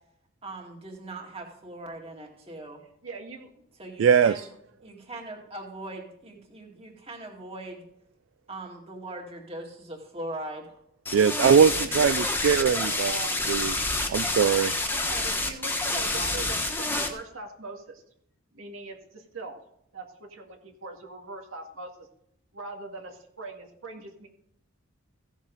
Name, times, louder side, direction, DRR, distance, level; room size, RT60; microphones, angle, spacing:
voice 1, 0.4-2.8 3.8-4.4 4.8-7.8 8.5-10.8, right 2 dB, 30° right, 1 dB, 2.3 m, -40 dB
voice 2, 3.0-3.6 11.7-13.6 14.9-18.0 18.5-19.6 19.9-22.1 22.5-24.3, right 3 dB, 85° right, 1 dB, 2.1 m, -41 dB
voice 3, 4.0-4.5 11.1-13.2 13.5-13.8 14.1-14.7, right 7 dB, 65° right, 14 dB, 0.3 m, -21 dB
sound 1, 11.1-17.1, left 2 dB, 10° left, 1.2 m, -28 dB
16.0 x 7.2 x 4.0 m, 0.74 s
head